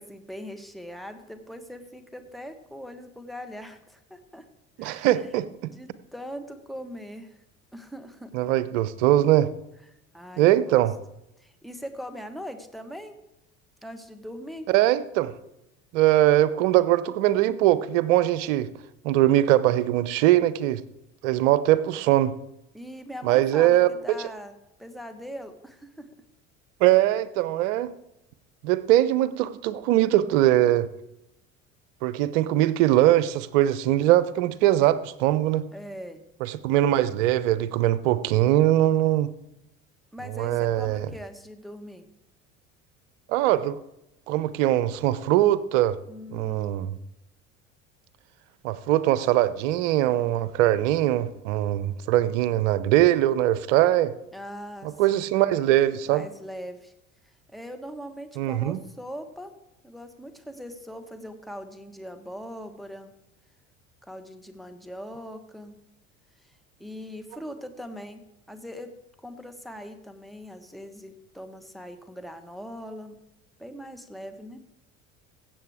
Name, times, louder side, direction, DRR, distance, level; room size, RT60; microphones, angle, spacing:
voice 1, 0.0-4.5 4.8-5.2 5.7-7.4 7.7-8.4 10.1-10.8 11.4-13.2 13.8-14.7 22.7-26.1 35.7-36.2 40.1-42.1 46.1-46.8 54.3-55.3 56.0-56.9 57.5-59.5 59.8-63.1 64.0-65.8 66.4-66.5 66.8-68.9 69.2-73.2 73.6-74.6, equal, ahead, 7 dB, 1.3 m, -41 dB
voice 2, 4.8-5.5 8.3-9.5 10.4-10.9 14.7-15.3 15.9-18.7 19.0-20.8 21.2-22.3 23.2-23.9 26.8-27.9 28.6-30.9 32.0-35.6 36.4-39.3 40.3-41.1 43.3-43.8 44.3-46.0 46.3-46.9 48.6-54.1 55.0-56.3 58.4-58.8, right 14 dB, 65° right, 16 dB, 0.8 m, -21 dB
16.0 x 7.7 x 3.6 m, 0.85 s
hypercardioid pair, 65°, 39 cm